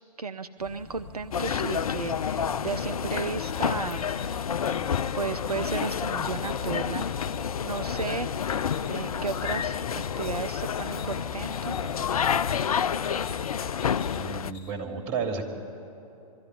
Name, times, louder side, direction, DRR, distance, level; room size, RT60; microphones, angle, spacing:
voice 1, 0.2-4.1 4.7-4.9 5.2-7.1 7.6-9.9 10.2-11.8, right 5 dB, 80° right, 10 dB, 0.6 m, -34 dB
sound 1, 0.6-13.6, left 3 dB, 10° left, 6.1 m, -44 dB
sound 2, 1.3-14.5, left 8 dB, 70° left, 0.4 m, -29 dB
sound 3, 3.4-14.7, left 3 dB, 40° left, 2.6 m, -46 dB
voice 2, 14.0-15.5, right 5 dB, 30° right, 4 dB, 2.8 m, -32 dB
22.5 x 13.5 x 9.8 m, 2.9 s
figure-of-eight pair, 115°, 19 cm